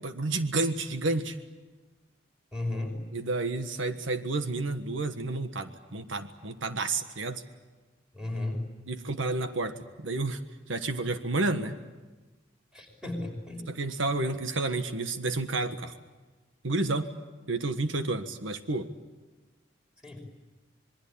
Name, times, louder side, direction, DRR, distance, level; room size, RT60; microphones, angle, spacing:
voice 1, 0.0-1.3 3.1-7.4 8.9-10.4 10.7-11.7 13.7-15.9 16.6-17.1 17.5-18.9, right 2 dB, 90° right, 8 dB, 1.5 m, -30 dB
voice 2, 2.5-3.0 8.1-8.6 12.7-13.7 20.0-20.2, left 2 dB, 5° right, 2 dB, 5.7 m, -34 dB
26.5 x 22.0 x 8.6 m, 1.2 s
head